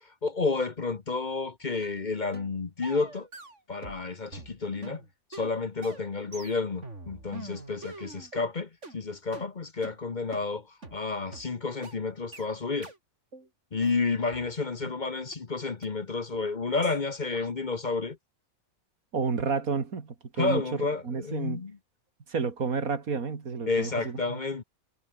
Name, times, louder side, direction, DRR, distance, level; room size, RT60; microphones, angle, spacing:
voice 1, 0.0-3.3 3.7-5.0 5.3-12.9 13.7-18.2 20.4-21.8 23.7-24.6, left 4 dB, 35° left, 1.1 m, -31 dB
sound 1, 1.8-2.0 2.3-2.5 2.8-4.1 4.3-8.5 8.8-9.0 9.3-9.5 9.8-10.0 10.3-10.5 10.8-11.0 11.3-11.5 11.8-12.0 12.3-12.5 12.8-13.0 13.3-13.5 13.8-15.0 15.3-15.4 15.8-15.9 16.3-16.5 16.8-17.0 17.3-17.5, right 3 dB, 55° right, 4.1 m, -45 dB
voice 2, 19.1-21.6 22.3-24.4, right 5 dB, 90° right, 2.6 m, -31 dB
omnidirectional pair, 1.5 m